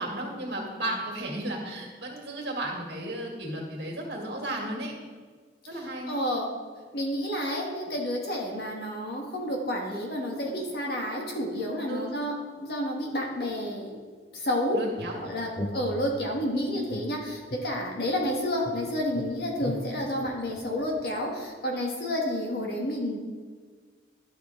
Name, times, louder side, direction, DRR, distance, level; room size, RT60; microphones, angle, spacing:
voice 1, 0.0-4.9 5.7-6.1 11.9-12.2 14.7-15.2, right 1 dB, 70° right, -1 dB, 2.0 m, -34 dB
voice 2, 5.7-6.5 6.9-14.0 14.3-14.8 15.2-23.2, equal, 60° left, 0 dB, 1.4 m, -30 dB
sound 1, 15.0-16.4 16.9-18.3 18.6-21.2, left 1 dB, 30° left, 0.5 m, -39 dB
12.0 x 5.7 x 3.6 m, 1.5 s
head